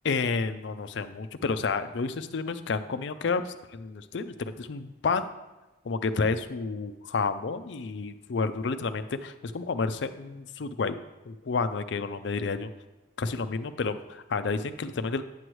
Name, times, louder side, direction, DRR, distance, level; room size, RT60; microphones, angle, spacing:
voice 1, 0.0-5.3 5.8-11.0 11.3-12.7 13.2-15.2, left 4 dB, 65° left, 10 dB, 0.5 m, -30 dB
9.0 x 7.8 x 3.1 m, 1.1 s
head